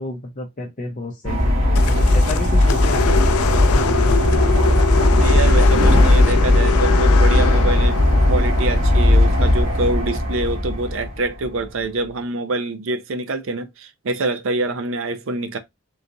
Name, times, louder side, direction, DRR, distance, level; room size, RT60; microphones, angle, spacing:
voice 1, 0.0-3.1 3.7-4.5, left 2 dB, 35° left, 0.6 m, -31 dB
sound 1, 1.2-11.5, left 1 dB, 85° right, 2.0 m, -16 dB
sound 2, 1.8-10.0, left 8 dB, 85° left, 0.4 m, -25 dB
sound 3, 4.1-6.5 7.0-7.3 7.7-7.9 9.3-9.9 10.1-10.3, right 1 dB, 40° right, 0.9 m, -33 dB
voice 2, 5.1-8.0 8.3-15.6, right 2 dB, 65° right, 0.5 m, -25 dB
3.8 x 2.8 x 2.5 m
head